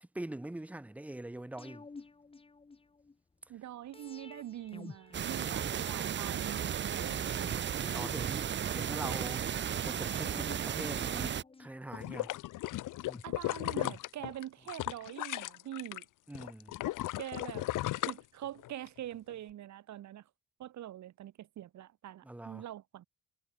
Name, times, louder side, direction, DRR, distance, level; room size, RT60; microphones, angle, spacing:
voice 1, 0.0-1.9 5.4-5.8 7.9-9.5 9.8-11.3 11.6-12.3 16.3-16.8 22.2-22.6, right 1 dB, 5° right, 0.9 m, -43 dB
sound 1, 1.6-3.1 3.9-6.1 7.0-9.2 10.0-12.4 13.1-14.7 15.0-15.1, left 4 dB, 20° left, 3.2 m, -51 dB
voice 2, 3.5-7.6 13.2-16.1 17.2-20.2 20.6-23.0, right 12 dB, 65° right, 2.4 m, -44 dB
sound 2, 5.1-11.4, right 9 dB, 35° right, 1.0 m, -34 dB
sound 3, 11.9-16.0 16.4-18.9 19.3-19.4, left 16 dB, 85° left, 0.8 m, -36 dB
cardioid pair, 175°, 31 cm